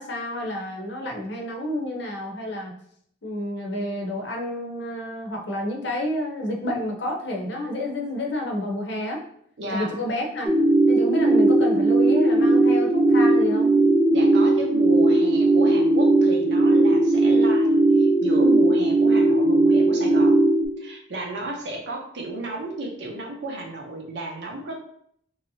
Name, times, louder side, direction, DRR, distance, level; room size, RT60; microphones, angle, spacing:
voice 1, 0.0-2.7 3.2-9.2 9.7-10.5 10.9-13.7, left 1 dB, 60° left, 1 dB, 0.7 m, -29 dB
voice 2, 9.6-9.9 14.1-20.4 20.8-24.8, right 2 dB, 60° right, -1 dB, 0.6 m, -33 dB
sound 1, 10.4-20.6, right 2 dB, 5° right, 0.3 m, -18 dB
3.0 x 2.7 x 2.7 m, 0.66 s
head